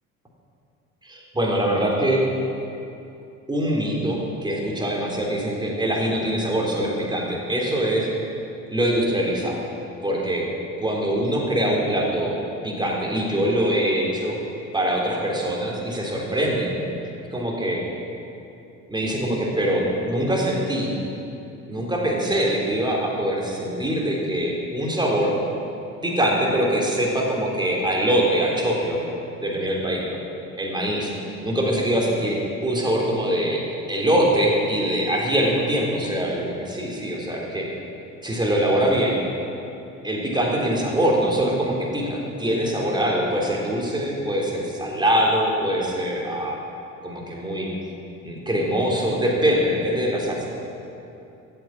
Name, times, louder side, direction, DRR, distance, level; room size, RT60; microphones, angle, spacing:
voice 1, 1.0-2.2 3.5-8.1 8.7-9.6 10.0-10.5 10.8-12.3 12.6-14.4 14.7-16.7 17.3-17.8 18.9-20.9 21.7-25.3 26.0-29.0 29.4-30.2 30.5-31.1 31.4-33.6 33.9-37.7 38.2-39.2 40.0-46.6 47.0-47.7 48.2-50.5, right 1 dB, 10° right, -2 dB, 3.6 m, -23 dB
14.5 x 9.3 x 7.4 m, 2.8 s
figure-of-eight pair, 55°, 41 cm